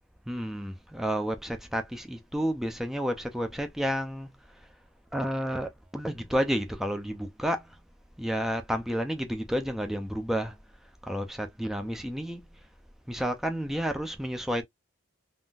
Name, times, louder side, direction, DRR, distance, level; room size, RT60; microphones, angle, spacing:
voice 1, 0.3-4.3 5.1-7.7 8.2-10.6 11.0-12.5 13.1-14.6, equal, ahead, 0.5 m, -31 dB
3.7 x 2.5 x 2.4 m
head